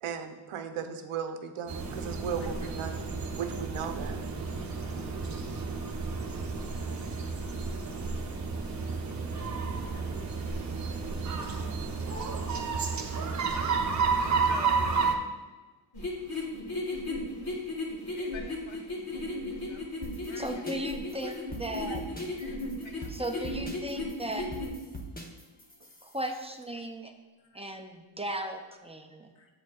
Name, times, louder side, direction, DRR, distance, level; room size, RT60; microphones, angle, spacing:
voice 1, 0.0-2.9 3.4-4.2 5.5-5.6 16.3-16.5, right 7 dB, 85° right, 7 dB, 0.8 m, -36 dB
sound 1, 1.7-15.1, right 4 dB, 35° right, 0.8 m, -31 dB
voice 2, 14.2-15.1 18.1-18.8 19.7-19.8 20.3-20.4 21.2-21.3 21.9-22.0 22.4-22.6 22.8-23.1 27.5-27.6 29.4-29.5, left 4 dB, 70° left, 3 dB, 1.0 m, -47 dB
sound 2, 15.9-24.7, left 2 dB, 45° left, 1.6 m, -35 dB
sound 3, 20.0-26.4, equal, 20° left, 0.9 m, -44 dB
voice 3, 20.4-22.0 23.1-24.5 26.0-27.1 27.5-29.3, right 1 dB, 15° right, 4 dB, 0.5 m, -36 dB
7.9 x 7.5 x 2.4 m, 1.2 s
wide cardioid pair, 115°, 49 cm